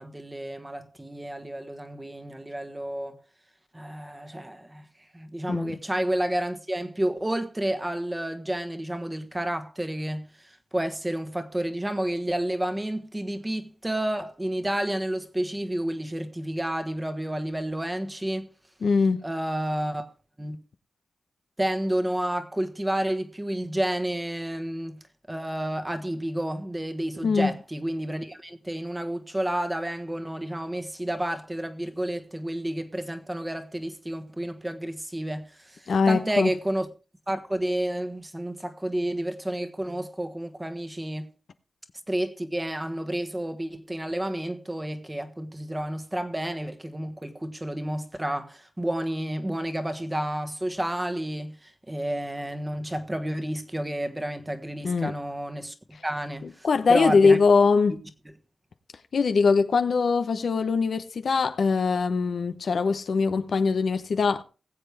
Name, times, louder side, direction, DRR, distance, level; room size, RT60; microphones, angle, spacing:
voice 1, 0.0-3.2 3.7-4.8 5.1-18.5 19.2-20.1 20.4-20.6 21.6-25.0 25.3-36.9 37.3-41.3 42.1-55.7 56.0-57.4 57.9-58.0, right 1 dB, 15° right, 1.4 m, -30 dB
voice 2, 18.8-19.2 27.2-27.5 35.9-36.5 54.8-55.1 56.4-57.9 59.1-64.4, left 4 dB, 70° left, 0.8 m, -22 dB
19.5 x 7.8 x 3.4 m
wide cardioid pair, 85°, 0 cm